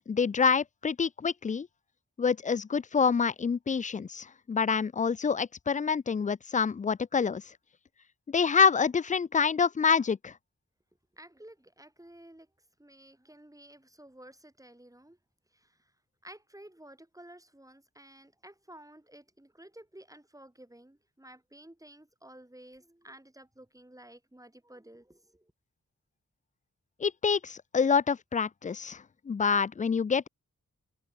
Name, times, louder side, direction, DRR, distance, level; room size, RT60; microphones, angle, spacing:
voice 1, 0.1-1.7 2.2-7.4 8.3-10.3 27.0-30.3, left 6 dB, 25° left, 0.4 m, -27 dB
voice 2, 11.1-12.5 12.8-15.2 15.5-15.8 16.2-25.5, right 1 dB, 10° right, 4.9 m, -53 dB
wide cardioid pair, 70°, 31 cm